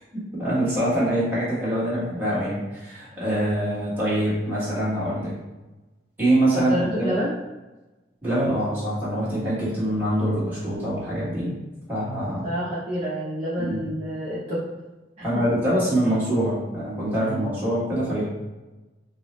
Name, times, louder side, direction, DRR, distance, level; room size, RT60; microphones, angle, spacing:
voice 1, 0.1-5.3 6.2-7.1 8.2-11.5 11.9-12.5 13.6-13.8 15.2-18.2, right 1 dB, 10° right, -10 dB, 1.4 m, -24 dB
voice 2, 6.5-7.3 12.4-14.6, equal, 35° right, -10 dB, 0.8 m, -27 dB
4.4 x 2.0 x 3.1 m, 1.1 s
head